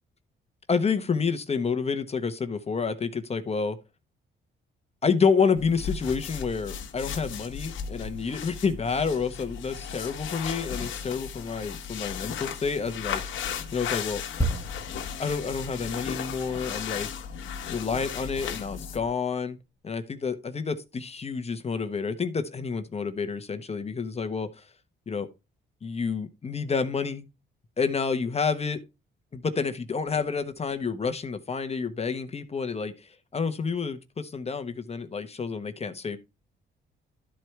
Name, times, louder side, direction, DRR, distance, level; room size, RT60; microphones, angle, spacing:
voice 1, 0.7-3.8 5.0-13.2 13.7-14.3 15.2-17.1 17.7-19.6 19.8-24.6 25.1-25.3 25.8-27.2 27.8-28.8 29.3-36.2, left 5 dB, 30° left, 1.1 m, -29 dB
sound 1, 5.5-19.1, left 7 dB, 75° left, 1.3 m, -36 dB
sound 2, 14.4-18.0 18.3-18.5, right 1 dB, 15° left, 1.5 m, -34 dB
12.5 x 4.6 x 3.3 m
cardioid pair, 90°, 20 cm